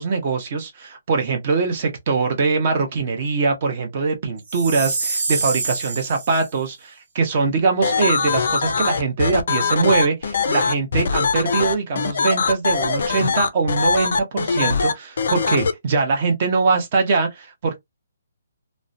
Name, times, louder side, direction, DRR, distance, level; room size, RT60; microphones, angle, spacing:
voice 1, 0.0-17.8, right 4 dB, 25° right, 0.7 m, -22 dB
Chime, 4.5-6.5, right 3 dB, 70° right, 1.0 m, -26 dB
sound 1, 7.8-15.7, left 5 dB, 50° left, 0.4 m, -21 dB
2.4 x 2.1 x 2.5 m
hypercardioid pair, 180°, 0 cm